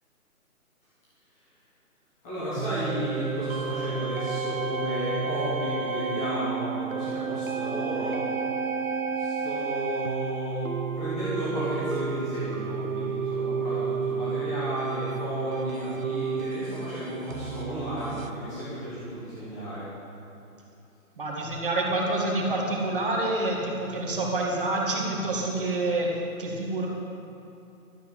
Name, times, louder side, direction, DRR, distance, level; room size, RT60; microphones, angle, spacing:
voice 1, 2.2-8.2 9.1-19.9, equal, 5° left, -12 dB, 1.1 m, -34 dB
sound 1, 2.6-18.3, right 5 dB, 65° right, 1.0 m, -31 dB
voice 2, 21.2-26.9, right 2 dB, 35° right, -2 dB, 2.0 m, -27 dB
12.5 x 7.0 x 8.4 m, 2.8 s
hypercardioid pair, 175°, 44 cm